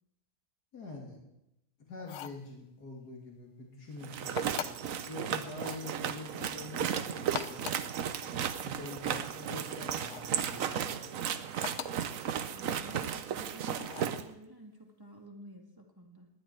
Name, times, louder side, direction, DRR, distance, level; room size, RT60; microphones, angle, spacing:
voice 1, 0.7-1.2 1.8-4.7 5.1-7.8 8.6-11.1, left 2 dB, 85° left, -1 dB, 3.1 m, -45 dB
sound 1, 2.0-2.4 4.4-4.9 5.5-5.9 7.2-7.9 10.0-10.4 11.6-12.1 13.8-14.2, left 10 dB, 60° left, 0.8 m, -41 dB
sound 2, 4.0-14.2, right 8 dB, 65° right, 1.1 m, -35 dB
voice 2, 12.5-16.3, right 1 dB, 15° right, 1 dB, 1.8 m, -51 dB
19.5 x 11.0 x 4.5 m, 0.85 s
omnidirectional pair, 1.7 m